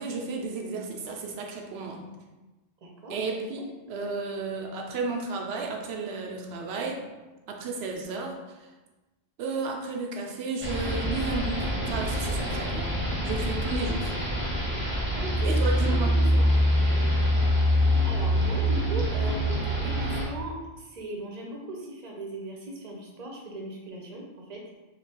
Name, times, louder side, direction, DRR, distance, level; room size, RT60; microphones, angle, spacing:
voice 1, 0.0-2.0 3.1-7.0 7.5-8.4 9.4-14.1 15.4-16.2, right 3 dB, 70° right, 2 dB, 0.9 m, -33 dB
voice 2, 2.8-3.1 3.5-3.6 15.2-16.7 18.0-24.6, right 1 dB, 40° right, -1 dB, 0.8 m, -38 dB
sound 1, 10.6-20.3, equal, 10° right, 0.8 m, -25 dB
3.3 x 2.8 x 4.3 m, 1.1 s
omnidirectional pair, 1.2 m